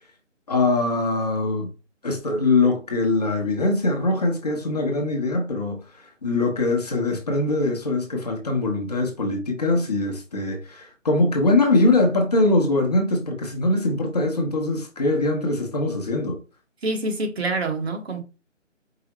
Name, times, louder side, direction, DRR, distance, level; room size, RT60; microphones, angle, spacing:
voice 1, 0.5-1.7 2.0-16.4, left 2 dB, 30° left, 0.9 m, -22 dB
voice 2, 16.8-18.2, right 2 dB, 55° right, 1.3 m, -26 dB
4.9 x 3.6 x 3.0 m
figure-of-eight pair, 165°, 38 cm